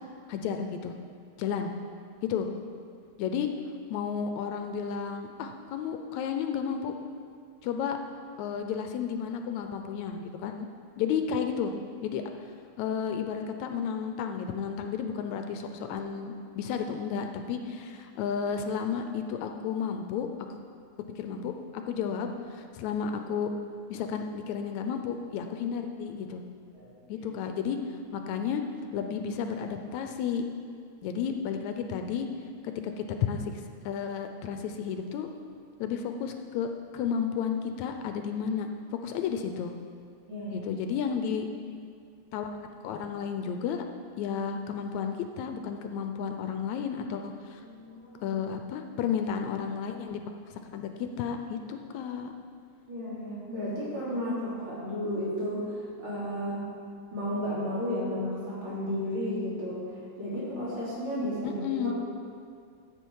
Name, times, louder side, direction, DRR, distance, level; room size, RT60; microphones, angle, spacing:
voice 1, 0.3-0.9 1.4-1.8 2.3-2.5 3.2-3.5 3.9-6.9 7.6-8.0 8.4-10.7 11.0-11.7 12.0-12.5 12.8-20.3 21.2-23.5 23.9-26.4 27.1-27.8 28.1-28.6 28.9-30.4 31.0-32.3 32.6-35.3 35.8-38.7 39.0-39.7 40.5-41.5 42.3-42.5 42.8-43.8 44.2-47.6 48.2-50.2 50.5-52.3 56.4-56.6 61.4-61.9, left 7 dB, 80° left, 6 dB, 1.9 m, -32 dB
voice 2, 26.7-27.3 40.3-40.7 47.6-48.3 52.9-56.6 57.1-61.9, equal, 45° right, -8 dB, 3.7 m, -33 dB
13.5 x 7.5 x 4.7 m, 2.2 s
omnidirectional pair, 3.3 m